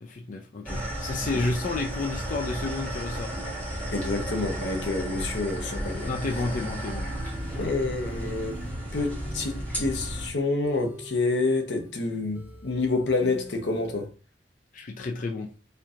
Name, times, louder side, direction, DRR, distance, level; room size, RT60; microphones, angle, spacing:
voice 1, 0.0-3.5 6.1-7.1 14.7-15.5, left 3 dB, 45° left, 0.4 m, -31 dB
sound 1, 0.7-10.3, right 1 dB, 10° left, 1.1 m, -33 dB
voice 2, 3.9-6.1 7.6-8.6 8.9-14.1, left 3 dB, 75° left, 0.8 m, -28 dB
sound 2, 7.2-14.1, equal, 10° right, 0.6 m, -45 dB
4.3 x 2.6 x 2.5 m
head